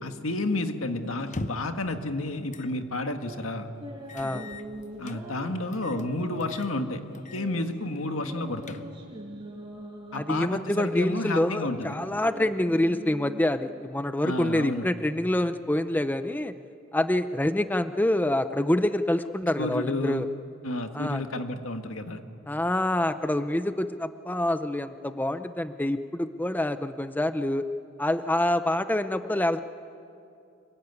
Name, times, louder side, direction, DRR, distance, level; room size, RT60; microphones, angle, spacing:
voice 1, 0.0-3.7 5.0-7.0 7.3-8.8 10.1-12.0 14.2-14.9 19.6-20.3 20.6-22.2, left 2 dB, 75° left, 6 dB, 1.8 m, -31 dB
sound 1, 1.2-1.8 2.5-2.7 3.1-3.2 4.1-5.2 5.7-6.1 6.4-6.7 7.1-7.5 7.8-7.9 8.4-9.1, left 2 dB, 35° left, 0.8 m, -41 dB
sound 2, 3.1-13.4, equal, 25° right, 5.3 m, -43 dB
voice 2, 4.1-4.5 10.1-16.5 16.9-20.3 20.9-21.2 22.5-27.6 28.0-29.6, left 1 dB, 10° left, 10 dB, 0.5 m, -26 dB
26.5 x 23.0 x 9.7 m, 2.5 s
head